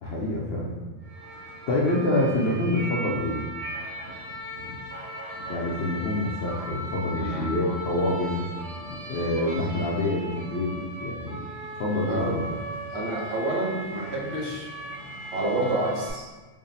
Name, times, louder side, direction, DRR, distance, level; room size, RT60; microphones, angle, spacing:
voice 1, 0.0-0.8 1.7-3.4 5.5-8.5 9.1-11.5 11.8-12.4, left 1 dB, 65° left, -4 dB, 0.7 m, -26 dB
sound 1, 1.0-16.1, right 1 dB, 75° right, 2.1 m, -37 dB
voice 2, 7.1-7.5 12.0-12.4 12.9-14.7 15.3-16.2, right 2 dB, 60° right, -4 dB, 0.9 m, -28 dB
3.5 x 2.1 x 3.9 m, 1.3 s
omnidirectional pair, 1.4 m